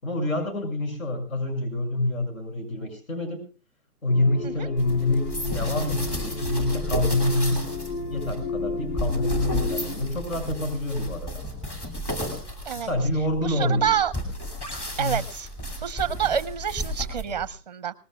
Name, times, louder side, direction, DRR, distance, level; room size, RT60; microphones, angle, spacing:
voice 1, 0.0-3.4 4.0-7.6 8.1-11.4 12.7-14.0 15.0-15.1, left 1 dB, 60° left, 7 dB, 6.7 m, -26 dB
sound 1, 4.1-10.0, left 3 dB, 80° left, 4.1 m, -33 dB
sound 2, 4.8-17.5, left 1 dB, 15° left, 2.7 m, -33 dB
voice 2, 13.4-14.1 15.0-15.5 15.8-17.9, right 9 dB, 30° right, 16 dB, 0.7 m, -27 dB
23.0 x 19.5 x 2.3 m, 0.34 s
hypercardioid pair, 165°, 46 cm